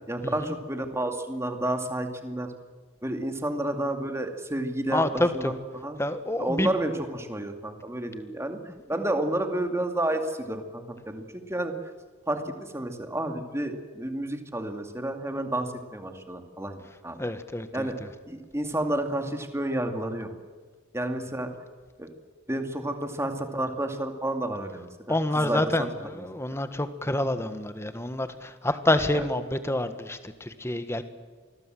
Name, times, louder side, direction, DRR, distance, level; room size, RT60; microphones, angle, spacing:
voice 1, 0.1-2.5 3.0-6.0 6.4-11.7 12.3-17.2 17.7-18.0 18.2-20.3 20.9-21.5 22.0-22.1 22.5-25.9 26.1-26.3 29.1-29.3, right 1 dB, 15° right, 5 dB, 2.3 m, -30 dB
voice 2, 4.9-5.5 6.0-6.7 17.2-17.9 25.1-31.0, left 1 dB, 15° left, 10 dB, 1.4 m, -27 dB
27.0 x 21.0 x 7.7 m, 1.5 s
head